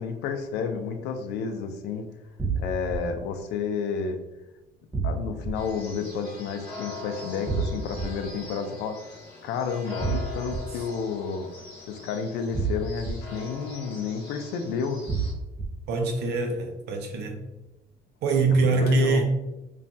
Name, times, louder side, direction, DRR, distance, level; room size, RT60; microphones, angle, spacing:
voice 1, 0.0-2.1 2.6-4.2 5.0-9.0 9.4-11.5 11.9-15.1 18.5-19.2, left 5 dB, 85° left, 0.4 m, -31 dB
sound 1, 2.4-3.0 4.9-5.5 7.5-8.0 10.0-10.6 12.5-13.1 15.1-15.6, right 4 dB, 10° right, 0.4 m, -27 dB
sound 2, 5.5-15.3, left 3 dB, 70° left, 0.9 m, -42 dB
voice 2, 15.9-17.4 18.2-19.2, right 3 dB, 80° right, 0.6 m, -23 dB
3.1 x 2.2 x 2.6 m
cardioid pair, 110°, 17 cm